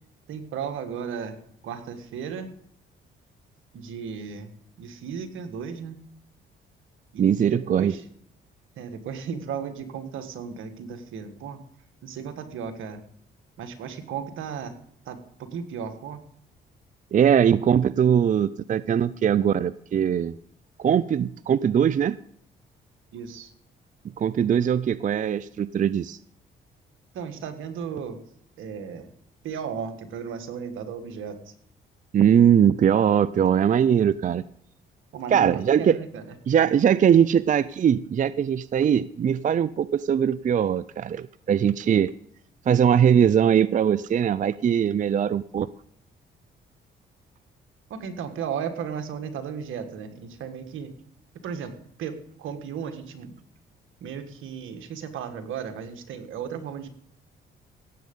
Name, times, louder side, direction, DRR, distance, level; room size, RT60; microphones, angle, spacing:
voice 1, 0.3-1.4 1.6-2.5 3.7-4.5 4.8-6.0 7.1-8.0 8.8-11.6 12.0-13.0 13.6-14.8 15.0-16.2 23.1-23.5 27.1-28.2 28.6-29.1 29.4-31.5 35.1-36.3 47.9-50.9 51.4-51.7 52.0-53.4 54.0-56.9, right 7 dB, 75° right, 8 dB, 1.5 m, -35 dB
voice 2, 7.2-7.9 17.1-20.3 20.8-22.2 24.2-26.2 32.1-34.4 35.3-36.0 36.5-42.1 42.7-45.7, right 8 dB, 40° right, 18 dB, 0.4 m, -21 dB
16.5 x 7.8 x 5.3 m, 0.65 s
supercardioid pair, 65°, 21 cm